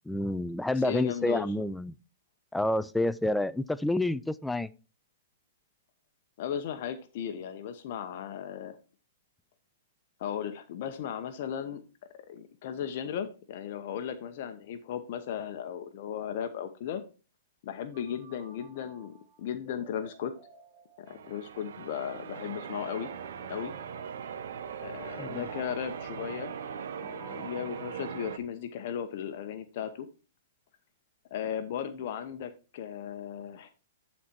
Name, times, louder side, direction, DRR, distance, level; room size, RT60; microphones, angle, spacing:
voice 1, 0.1-1.9 2.5-4.7 25.2-25.4, left 1 dB, 5° left, 0.4 m, -29 dB
voice 2, 0.8-1.5 6.4-8.8 10.2-11.8 12.1-17.0 17.6-20.3 21.0-23.1 23.5-23.7 24.8-26.6 27.0-30.1 31.3-33.7, left 9 dB, 55° left, 0.9 m, -36 dB
sound 1, 17.9-28.7, right 2 dB, 30° right, 2.8 m, -53 dB
Church bell, 21.1-28.4, right 7 dB, 70° right, 0.8 m, -40 dB
11.0 x 4.3 x 4.4 m
hypercardioid pair, 135°, 0 cm